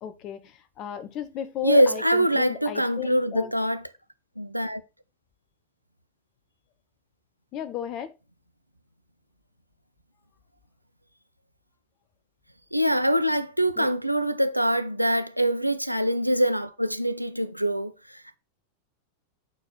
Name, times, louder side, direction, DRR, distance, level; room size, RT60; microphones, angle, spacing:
voice 1, 0.0-3.5 7.5-8.1 13.8-13.9, left 10 dB, 35° left, 0.9 m, -34 dB
voice 2, 1.6-3.9 4.4-4.8 12.7-18.4, equal, 90° right, 0.5 m, -24 dB
8.2 x 4.4 x 3.9 m
figure-of-eight pair, 90°, 0 cm